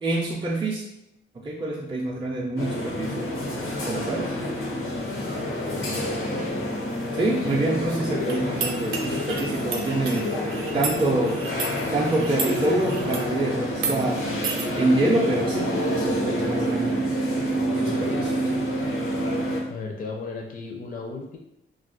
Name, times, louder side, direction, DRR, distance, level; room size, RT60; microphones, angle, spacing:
voice 1, 0.0-0.9 1.4-3.3 3.9-4.3 7.1-10.3 10.7-11.4 11.9-14.3 14.8-17.1 17.8-18.3, right 2 dB, 25° right, -3 dB, 0.5 m, -26 dB
sound 1, 2.6-19.6, equal, 90° left, 0.8 m, -28 dB
voice 2, 5.6-6.6 18.1-18.3 19.7-21.4, left 3 dB, 45° left, 1 dB, 0.5 m, -36 dB
sound 2, 8.3-13.3 13.7-14.0 14.4-14.7, right 4 dB, 80° right, 0.5 m, -33 dB
2.4 x 2.1 x 3.7 m, 0.82 s
cardioid pair, 90°, 21 cm